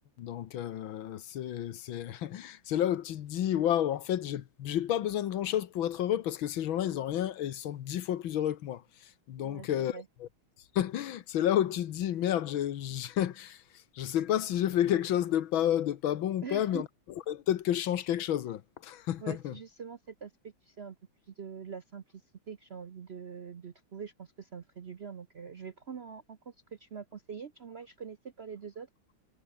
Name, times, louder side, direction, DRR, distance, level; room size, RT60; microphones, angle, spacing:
voice 1, 0.2-10.3 10.8-13.6 14.0-16.9 17.3-19.5, left 11 dB, 80° left, 1.8 m, -31 dB
voice 2, 9.4-10.1 16.4-16.8 19.2-21.0 21.3-22.2 22.5-28.9, right 6 dB, 50° right, 0.7 m, -44 dB
omnidirectional pair, 2.2 m